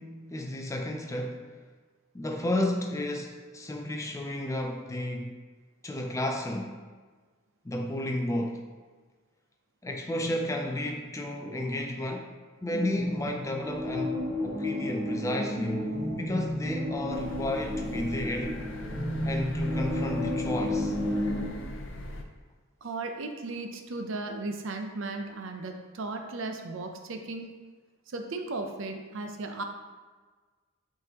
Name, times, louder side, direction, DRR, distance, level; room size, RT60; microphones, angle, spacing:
voice 1, 0.0-1.5 2.1-5.4 5.8-6.8 7.6-8.7 9.8-12.3 12.6-18.6 19.2-21.0, left 1 dB, 15° left, 3 dB, 0.4 m, -32 dB
sound 1, 12.7-21.5, left 1 dB, 25° right, 1.5 m, -32 dB
sound 2, 17.1-22.2, left 1 dB, 60° left, 0.6 m, -40 dB
voice 2, 22.8-27.5 28.1-29.6, right 3 dB, 60° right, 4 dB, 0.6 m, -36 dB
8.4 x 3.8 x 2.9 m, 1.4 s
head